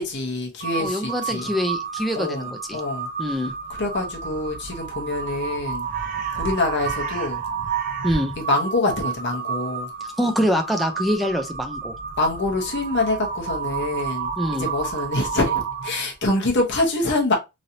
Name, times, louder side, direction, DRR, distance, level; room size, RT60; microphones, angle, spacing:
voice 1, 0.0-1.5 2.1-3.1 3.8-5.9 6.4-7.4 8.4-9.9 12.2-17.3, left 2 dB, 55° left, 1.0 m, -25 dB
Crow, 0.6-16.1, right 6 dB, 40° right, 0.6 m, -30 dB
voice 2, 0.8-2.8 3.2-3.5 8.0-8.3 10.2-11.9 14.4-14.7, equal, ahead, 0.5 m, -24 dB
3.1 x 2.7 x 2.7 m
head